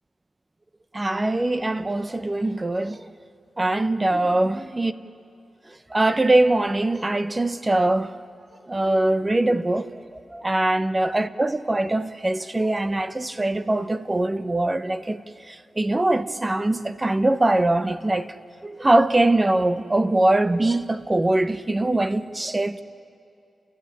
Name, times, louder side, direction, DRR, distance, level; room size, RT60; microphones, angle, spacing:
voice 1, 0.9-3.1 3.6-4.9 5.9-8.1 8.7-9.9 10.3-15.2 15.5-18.3 18.6-22.8, right 2 dB, 20° right, 0.9 m, -22 dB
29.0 x 14.5 x 10.0 m
wide cardioid pair, 100°, 0 cm